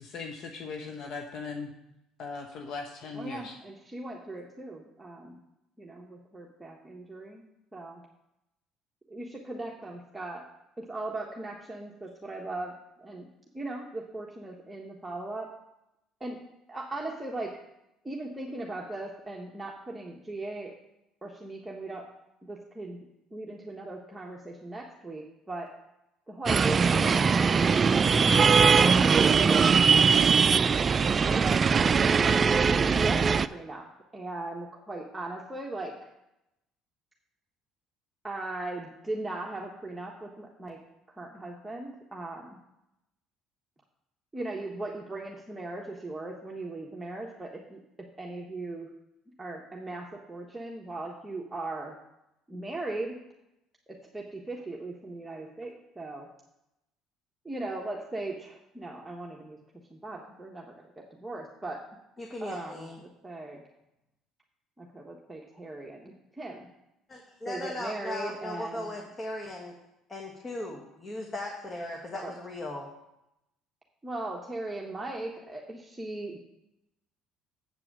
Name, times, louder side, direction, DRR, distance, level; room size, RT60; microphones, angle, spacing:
voice 1, 0.0-1.7 2.2-3.5, left 4 dB, 60° left, 3 dB, 1.0 m, -39 dB
voice 2, 3.1-5.4 5.8-7.4 7.7-8.0 9.1-10.4 10.8-13.3 13.5-15.5 16.2-16.4 16.7-17.6 18.0-20.7 21.2-22.1 22.4-23.0 23.3-25.7 26.3-28.3 28.8-31.6 32.6-33.9 34.1-36.1 38.2-40.8 41.1-42.6 44.3-48.9 49.4-52.0 52.5-53.2 53.9-56.3 57.4-59.6 59.9-61.9 62.4-63.6 64.8-66.7 67.5-68.9 72.1-72.3 74.0-76.4, right 2 dB, 10° right, -2 dB, 1.3 m, -38 dB
sound 1, 26.5-33.5, right 5 dB, 35° right, 0.3 m, -21 dB
voice 3, 62.2-63.0 67.1-69.8 70.1-72.9, left 1 dB, 30° left, 1 dB, 1.6 m, -38 dB
8.0 x 4.8 x 7.3 m, 0.87 s
supercardioid pair, 75°, 0 cm